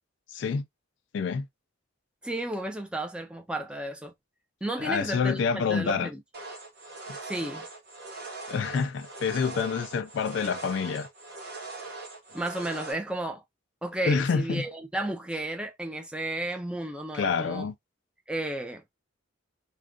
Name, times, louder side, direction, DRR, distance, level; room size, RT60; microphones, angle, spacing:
voice 1, 0.3-0.7 1.1-1.5 4.8-6.1 8.5-11.1 14.0-14.6 17.1-17.7, left 5 dB, 60° left, 0.3 m, -27 dB
voice 2, 2.2-4.1 4.6-6.2 7.2-7.7 12.3-13.4 13.8-17.7 18.3-18.8, right 1 dB, 5° right, 0.4 m, -33 dB
sound 1, 6.3-12.9, right 3 dB, 50° right, 0.9 m, -41 dB
2.4 x 2.3 x 3.6 m
head